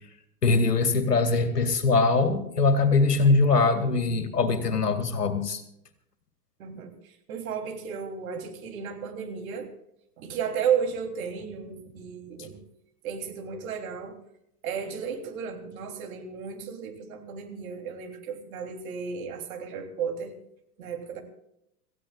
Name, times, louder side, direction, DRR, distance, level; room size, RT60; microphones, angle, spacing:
voice 1, 0.4-5.6, left 3 dB, 80° left, 8 dB, 2.3 m, -22 dB
voice 2, 6.6-9.7 10.2-12.6 13.0-14.2 14.6-20.3 20.8-21.2, right 7 dB, 60° right, 3 dB, 3.4 m, -33 dB
27.0 x 15.5 x 2.4 m, 0.79 s
figure-of-eight pair, 90°, 46 cm